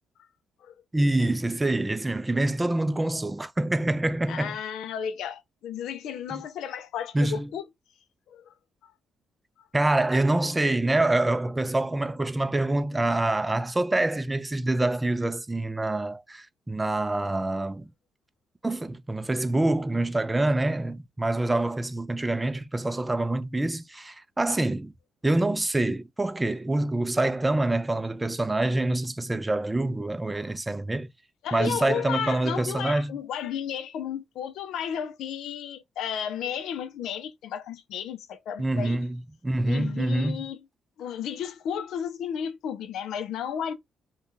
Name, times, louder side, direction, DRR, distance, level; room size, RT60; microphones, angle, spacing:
voice 1, 0.9-4.6 6.3-6.4 7.1-7.5 9.7-17.9 18.6-24.9 25.2-31.1 31.5-33.1 38.6-40.4, right 2 dB, 15° right, 0.4 m, -26 dB
voice 2, 4.3-7.7 8.3-8.5 8.8-8.9 31.4-39.0 39.6-40.6 41.0-43.7, left 8 dB, 80° left, 0.4 m, -33 dB
2.6 x 2.2 x 3.6 m
cardioid pair, 90°, 0 cm